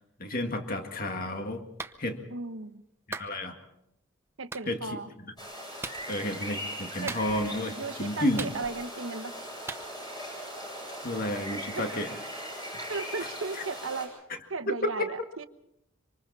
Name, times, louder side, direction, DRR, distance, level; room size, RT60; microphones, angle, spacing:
voice 1, 0.2-1.6 2.0-2.2 3.1-3.5 4.7-5.0 6.1-8.5 11.0-12.1 13.6-13.7 14.8-15.1, left 1 dB, 45° left, 5 dB, 2.0 m, -31 dB
Clapping, 1.8-2.0 3.1-3.3 4.5-4.7 5.8-6.0 7.1-7.5 8.4-8.9 9.7-9.8, right 3 dB, 10° right, 0.8 m, -38 dB
voice 2, 2.3-2.8 4.4-5.1 7.0-7.1 7.8-9.3 11.7-12.0 12.9-14.1 14.5-15.5, right 3 dB, 75° right, 9 dB, 1.2 m, -36 dB
sound 1, 5.4-14.1, equal, 20° left, 7.8 m, -39 dB
26.0 x 26.0 x 4.2 m, 0.79 s
head